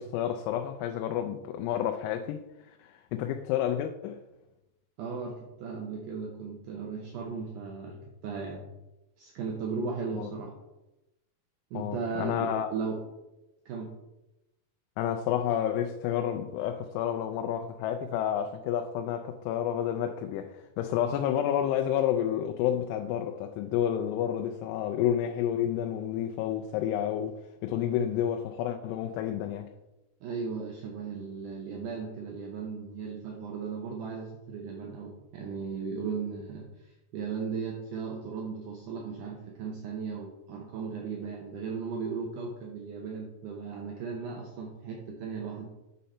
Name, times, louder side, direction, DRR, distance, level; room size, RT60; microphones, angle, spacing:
voice 1, 0.0-4.2 10.2-10.3 11.7-12.7 15.0-27.4 27.6-29.7, left 10 dB, 90° left, 2.7 m, -30 dB
voice 2, 5.0-8.7 9.2-10.5 11.7-13.0 13.7-13.9 30.2-45.7, right 5 dB, 80° right, 1.8 m, -36 dB
6.8 x 6.4 x 4.2 m
omnidirectional pair, 4.7 m